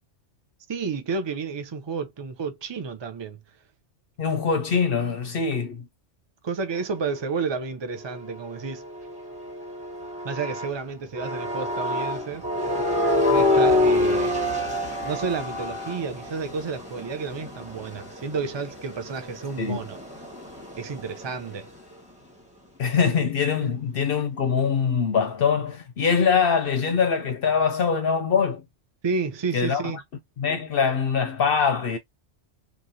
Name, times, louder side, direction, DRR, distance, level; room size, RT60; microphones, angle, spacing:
voice 1, 0.7-3.4 6.4-8.8 10.2-12.5 13.3-14.4 14.9-20.0 20.8-21.7 29.0-30.0, right 5 dB, 40° right, 0.4 m, -31 dB
voice 2, 4.2-5.9 19.6-19.8 22.8-28.6 29.5-29.8 30.4-32.0, left 6 dB, 60° left, 0.7 m, -23 dB
sound 1, 7.9-10.8 11.2-21.6, left 2 dB, 5° right, 1.0 m, -27 dB
3.1 x 2.5 x 2.6 m
omnidirectional pair, 1.2 m